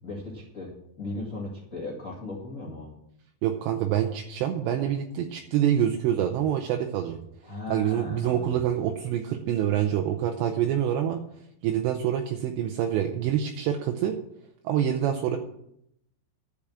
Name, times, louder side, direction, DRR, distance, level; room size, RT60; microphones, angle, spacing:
voice 1, 0.0-2.9 7.4-8.6, left 2 dB, 35° left, -5 dB, 1.2 m, -37 dB
voice 2, 3.4-7.2 7.7-11.2 11.6-14.2 14.6-15.4, right 10 dB, 80° right, 4 dB, 2.9 m, -26 dB
11.5 x 7.2 x 7.3 m, 0.77 s
omnidirectional pair, 5.1 m